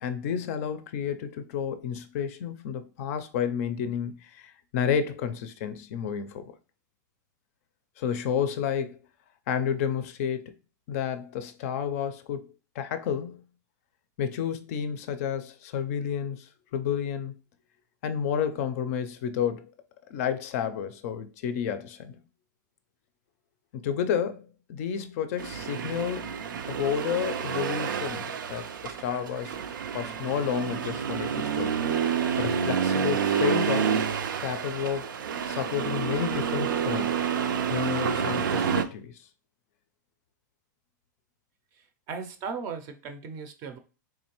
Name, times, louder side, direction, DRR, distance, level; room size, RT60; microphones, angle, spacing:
voice 1, 0.0-6.5 8.0-9.0 9.5-10.5 10.9-13.4 14.2-17.3 18.0-19.7 20.1-22.2 23.7-29.6 29.9-31.8 32.4-34.0 34.4-35.1 35.5-37.2 37.7-39.2, left 8 dB, 45° left, 0.4 m, -31 dB
Accelerating revving vroom, 25.4-38.8, right 7 dB, 90° right, 0.5 m, -29 dB
voice 2, 41.7-43.8, right 5 dB, 30° right, 0.5 m, -37 dB
3.7 x 3.1 x 2.9 m
hypercardioid pair, 150°, 11 cm